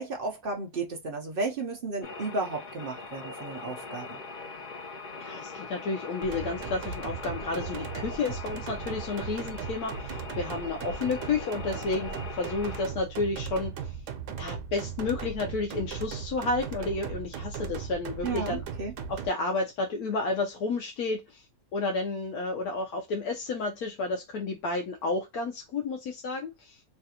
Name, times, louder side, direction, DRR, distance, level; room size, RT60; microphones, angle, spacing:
voice 1, 0.0-4.2 18.2-18.9, right 3 dB, 55° right, 0.6 m, -33 dB
sound 1, 2.0-12.9, left 3 dB, 50° left, 0.6 m, -41 dB
voice 2, 5.2-14.0 14.4-18.6 19.1-21.5 21.7-26.8, left 3 dB, 75° left, 1.1 m, -31 dB
sound 2, 6.2-19.3, right 6 dB, 90° right, 1.2 m, -37 dB
3.2 x 2.4 x 2.7 m
omnidirectional pair, 1.7 m